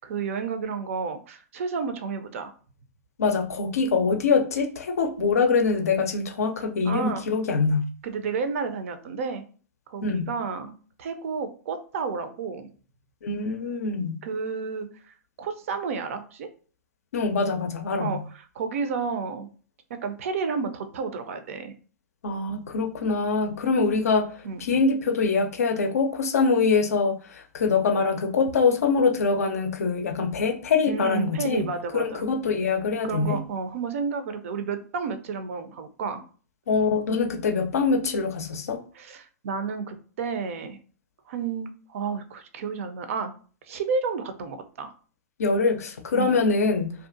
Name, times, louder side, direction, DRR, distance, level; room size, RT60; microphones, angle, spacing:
voice 1, 0.0-2.5 6.8-7.2 8.0-9.4 9.9-10.7 11.0-12.7 14.2-16.5 18.0-18.2 18.6-19.5 20.0-21.7 24.4-24.6 30.9-32.2 33.0-36.2 39.0-40.8 41.3-43.3 43.7-44.9 46.1-46.4, right 5 dB, 55° right, 9 dB, 0.4 m, -31 dB
voice 2, 3.2-7.9 10.0-10.3 13.2-14.2 17.1-18.2 22.2-31.7 31.9-33.4 36.7-38.8 45.4-46.9, left 4 dB, 65° left, 5 dB, 0.5 m, -24 dB
2.6 x 2.3 x 2.5 m, 0.40 s
figure-of-eight pair, 105°, 9 cm